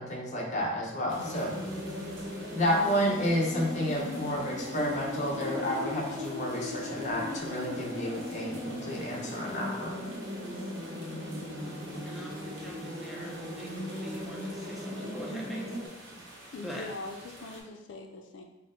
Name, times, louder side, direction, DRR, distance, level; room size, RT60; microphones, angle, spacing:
voice 1, 0.0-1.5 2.5-9.9, equal, 40° left, -2 dB, 0.7 m, -31 dB
sound 1, 1.1-15.9, left 1 dB, 50° right, 0.6 m, -38 dB
sound 2, 1.1-17.6, right 1 dB, 85° right, 1.0 m, -49 dB
voice 2, 12.0-15.7 16.6-16.8, equal, ahead, -3 dB, 0.4 m, -43 dB
voice 3, 16.5-18.4, left 3 dB, 80° left, 3 dB, 0.4 m, -42 dB
4.5 x 2.0 x 3.6 m, 0.99 s
head